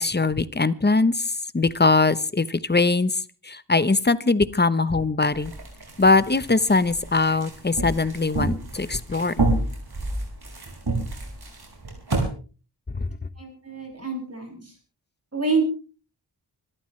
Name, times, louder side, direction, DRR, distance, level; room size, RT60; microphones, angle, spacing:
voice 1, 0.0-3.1 3.5-5.5 6.0-9.3 13.0-13.1, left 3 dB, 25° left, 15 dB, 0.9 m, -21 dB
sound 1, 5.3-12.2, right 2 dB, 65° right, 5.9 m, -29 dB
voice 2, 13.4-14.7 15.3-15.6, right 4 dB, 35° right, 0 dB, 7.7 m, -27 dB
25.5 x 13.5 x 3.3 m, 0.36 s
wide cardioid pair, 75°, 40 cm